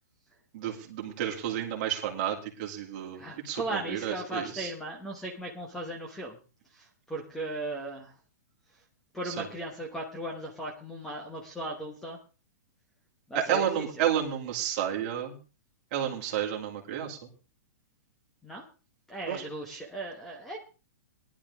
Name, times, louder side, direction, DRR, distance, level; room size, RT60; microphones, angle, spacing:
voice 1, 0.5-4.7 9.2-9.5 13.3-15.4 15.9-17.2 19.3-19.4, right 10 dB, 30° right, 1 dB, 2.6 m, -31 dB
voice 2, 3.1-6.4 6.7-8.1 9.1-12.2 13.3-13.9 18.4-18.6 19.1-20.6, right 1 dB, 5° left, 1 dB, 1.1 m, -37 dB
18.5 x 11.0 x 3.6 m, 0.33 s
hypercardioid pair, 180°, 9 cm